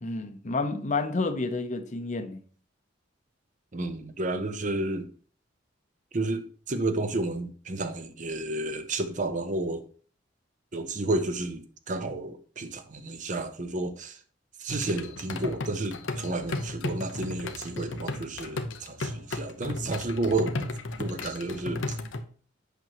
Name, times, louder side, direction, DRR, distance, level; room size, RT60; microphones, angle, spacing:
voice 1, 0.0-2.4, left 3 dB, 40° left, 0.7 m, -30 dB
voice 2, 3.7-5.1 6.1-9.8 10.7-14.2 14.6-20.7 21.0-22.0, right 2 dB, 40° right, 0.7 m, -31 dB
sound 1, 14.7-22.2, left 2 dB, 85° left, 0.8 m, -35 dB
8.2 x 6.0 x 2.9 m
head